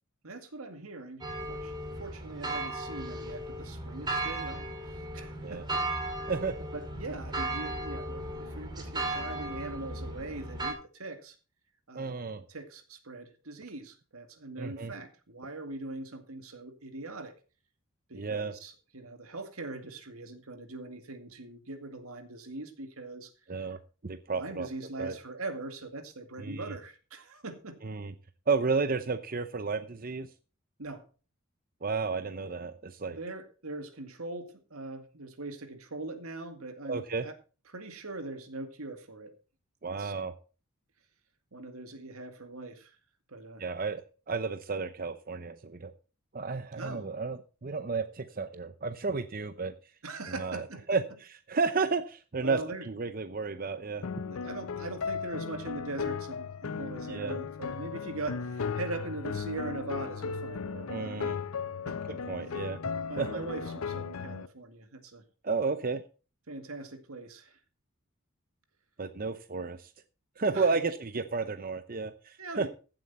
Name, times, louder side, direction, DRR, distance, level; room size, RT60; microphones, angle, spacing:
voice 1, 0.2-5.8 6.7-11.4 11.9-12.2 12.5-17.3 18.1-23.3 24.3-27.8 30.8-31.1 33.1-37.3 37.7-39.3 39.9-40.1 41.5-43.0 43.3-43.6 46.8-47.1 50.0-51.0 52.4-52.9 54.2-61.4 61.8-62.2 62.5-62.6 63.1-65.2 66.5-67.6 70.5-70.7 72.4-72.7, right 2 dB, 85° right, 7 dB, 2.1 m, -41 dB
sound 1, 1.2-10.7, right 2 dB, 20° right, 2.5 m, -36 dB
voice 2, 11.9-12.4 14.6-14.9 18.1-18.5 23.5-23.8 24.0-24.7 25.0-25.2 26.4-26.7 27.8-28.1 28.5-30.3 31.8-33.2 36.9-37.3 39.8-40.3 43.6-44.0 44.3-45.9 46.3-49.7 50.4-51.0 51.5-52.6 52.9-54.1 57.1-57.4 60.9-61.4 62.3-62.8 63.2-63.4 65.4-66.0 69.0-69.9 70.4-72.7, right 4 dB, 40° right, 10 dB, 0.7 m, -32 dB
sound 2, 54.0-64.5, left 5 dB, 85° left, 0.6 m, -36 dB
15.5 x 7.8 x 4.2 m, 0.35 s
head